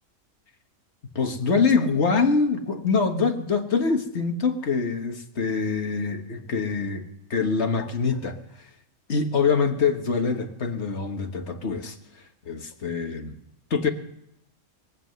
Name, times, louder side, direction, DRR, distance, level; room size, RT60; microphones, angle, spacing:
voice 1, 1.1-8.7 9.1-12.0 12.4-13.4 13.7-13.9, left 5 dB, 60° left, 5 dB, 1.7 m, -24 dB
22.5 x 7.7 x 6.7 m, 0.81 s
omnidirectional pair, 1.3 m